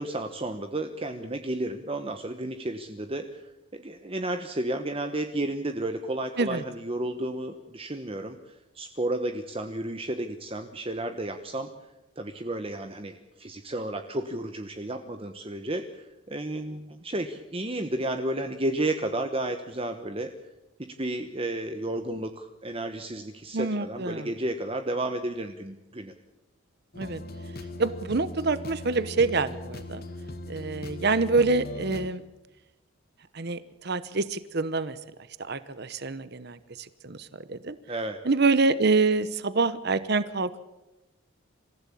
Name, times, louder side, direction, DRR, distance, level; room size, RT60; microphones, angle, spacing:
voice 1, 0.0-11.7 12.2-20.3 20.8-26.1 37.9-38.2, right 1 dB, 25° right, 7 dB, 1.1 m, -32 dB
voice 2, 23.5-24.3 27.0-27.2 27.8-30.0 30.5-32.2 33.3-35.0 35.4-37.8 38.2-40.7, right 3 dB, 50° right, 15 dB, 0.9 m, -26 dB
sound 1, 26.9-32.1, left 1 dB, 45° left, 1.9 m, -39 dB
26.0 x 16.0 x 8.5 m, 1.0 s
head